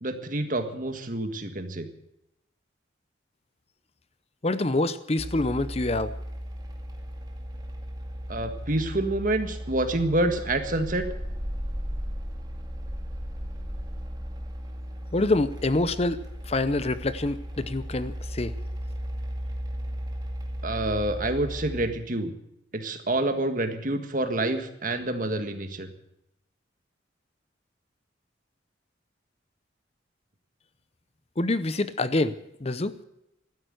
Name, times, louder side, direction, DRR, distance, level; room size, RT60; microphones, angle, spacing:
voice 1, 0.0-1.9 8.3-11.1 20.6-22.3 22.7-25.9, right 1 dB, 45° right, 8 dB, 1.7 m, -27 dB
voice 2, 4.4-6.2 15.1-18.5 31.4-32.3 32.6-33.0, left 2 dB, 30° left, 14 dB, 0.7 m, -26 dB
sound 1, 5.2-21.9, equal, 20° right, 2.2 m, -35 dB
14.5 x 12.5 x 7.9 m, 0.83 s
head